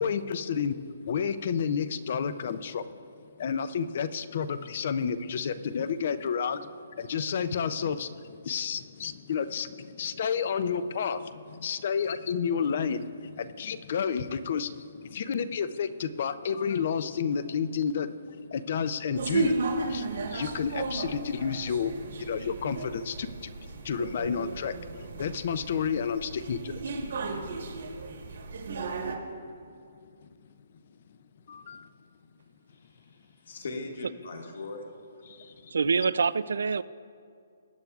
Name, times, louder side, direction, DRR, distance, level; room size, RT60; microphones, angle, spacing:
voice 1, 0.0-2.9 3.4-19.6 19.9-27.0 30.2-30.3 31.5-31.9 35.3-35.7, left 6 dB, 35° left, 14 dB, 0.4 m, -31 dB
sound 1, 19.1-29.2, right 3 dB, 60° right, 1.3 m, -34 dB
voice 2, 32.7-34.8, left 3 dB, 60° left, 2 dB, 1.6 m, -40 dB
voice 3, 35.7-36.8, right 5 dB, 90° right, 17 dB, 0.3 m, -25 dB
20.5 x 8.9 x 2.4 m, 2.3 s
hypercardioid pair, 180°, 0 cm